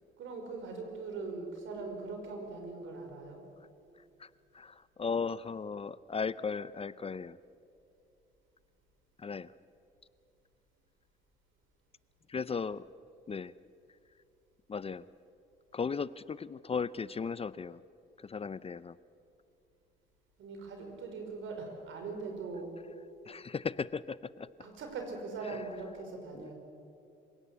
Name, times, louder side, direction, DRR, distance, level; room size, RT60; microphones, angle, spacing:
voice 1, 0.2-3.4 20.4-22.8 24.6-26.5, right 4 dB, 80° right, 4 dB, 5.1 m, -41 dB
voice 2, 4.2-7.4 9.2-9.5 12.3-12.9 13.3-13.5 14.7-15.1 15.7-17.8 18.2-19.0 23.3-24.5 25.4-25.6 26.3-26.5, left 5 dB, 30° left, 18 dB, 0.5 m, -36 dB
26.5 x 17.5 x 8.5 m, 2.7 s
cardioid pair, 90°, 20 cm